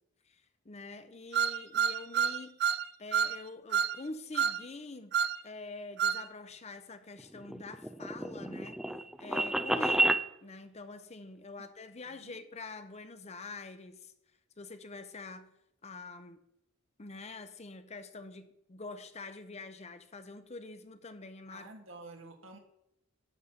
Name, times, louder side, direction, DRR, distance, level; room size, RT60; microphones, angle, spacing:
voice 1, 0.3-2.6 3.0-5.2 5.4-8.8 9.2-14.1 14.6-15.5 15.8-16.4 17.0-21.7, left 3 dB, 35° left, 0.8 m, -46 dB
sound 1, 1.3-2.8 3.1-3.4 3.7-4.0 4.3-4.6 5.1-5.4 6.0-6.2, right 8 dB, 55° right, 0.5 m, -28 dB
sound 2, 7.2-10.2, right 1 dB, 5° right, 0.4 m, -30 dB
voice 2, 12.1-12.4 21.5-22.6, right 2 dB, 85° right, 1.8 m, -50 dB
11.0 x 4.1 x 7.6 m
head